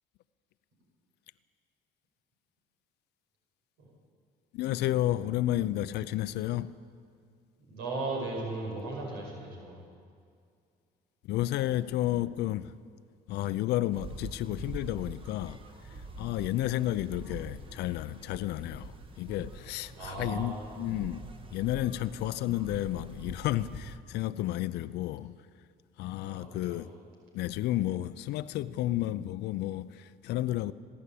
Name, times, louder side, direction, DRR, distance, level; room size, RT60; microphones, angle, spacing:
voice 1, 4.5-6.7 11.3-12.8 13.3-15.6 16.2-21.2 21.5-25.4 26.0-26.9 27.3-30.7, left 14 dB, 80° left, 0.6 m, -31 dB
voice 2, 7.7-9.8 19.9-20.9 26.2-26.9, right 2 dB, 85° right, 5.2 m, -37 dB
sound 1, 13.9-24.0, right 2 dB, 30° right, 1.6 m, -45 dB
29.5 x 11.0 x 8.5 m
cardioid pair, 110°, 17 cm